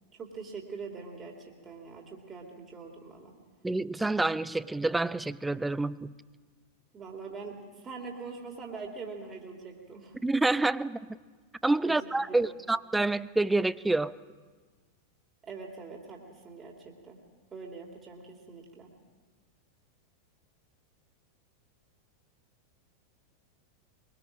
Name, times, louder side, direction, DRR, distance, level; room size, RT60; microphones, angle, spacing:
voice 1, 0.1-3.4 6.9-10.2 11.8-12.0 12.3-12.4 15.4-17.2 17.5-18.9, right 4 dB, 20° right, 1 dB, 3.1 m, -43 dB
voice 2, 3.6-6.1 10.2-11.0 11.6-14.1, right 2 dB, 5° right, 18 dB, 0.6 m, -27 dB
23.0 x 22.5 x 6.3 m, 1.4 s
figure-of-eight pair, 90°, 0 cm